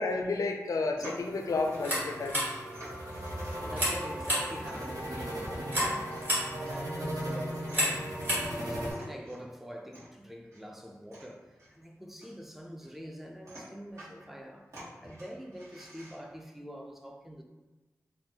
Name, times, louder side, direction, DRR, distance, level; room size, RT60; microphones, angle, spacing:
voice 1, 0.0-2.4, left 3 dB, 80° left, 0.4 m, -31 dB
sound 1, 0.7-16.4, equal, 60° right, 1.2 m, -52 dB
sound 2, 1.0-8.9, equal, 85° right, 0.9 m, -38 dB
sound 3, 1.7-9.1, equal, 35° right, 1.3 m, -34 dB
voice 2, 3.3-6.2 6.6-8.1 8.6-17.4, equal, 5° right, 0.3 m, -45 dB
3.4 x 2.1 x 2.8 m
wide cardioid pair, 90°, 6 cm